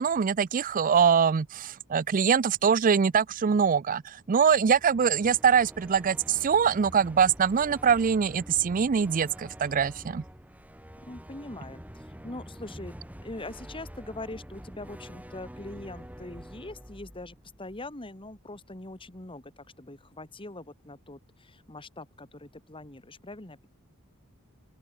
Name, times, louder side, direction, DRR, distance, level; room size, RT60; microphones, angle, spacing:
voice 1, 0.0-10.2, right 6 dB, 35° right, 0.4 m, -23 dB
sound 1, 4.4-18.4, equal, 5° right, 2.2 m, -46 dB
voice 2, 11.0-12.9 13.2-23.7, left 2 dB, 25° left, 2.0 m, -42 dB
open air
head